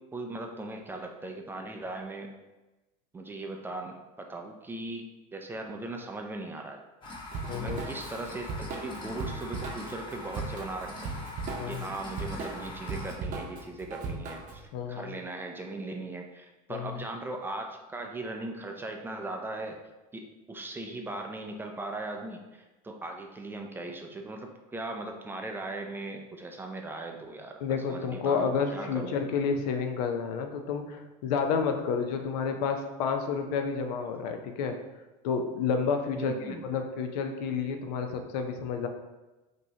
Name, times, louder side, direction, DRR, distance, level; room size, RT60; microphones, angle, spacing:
voice 1, 0.0-2.3 3.1-5.1 5.3-6.8 7.5-11.2 11.7-19.8 20.1-27.6 27.9-29.2 36.2-36.7, right 2 dB, 10° right, 2 dB, 0.3 m, -39 dB
sound 1, 7.0-13.1, left 1 dB, 25° left, 0.9 m, -43 dB
Drum kit / Drum, 7.3-14.6, right 3 dB, 40° right, 0.7 m, -38 dB
voice 2, 7.5-7.9 11.6-11.9 14.7-15.1 16.7-17.0 27.6-34.8 35.2-38.9, left 5 dB, 90° left, 5 dB, 0.6 m, -30 dB
5.3 x 2.8 x 2.8 m, 1.1 s
cardioid pair, 140°, 20 cm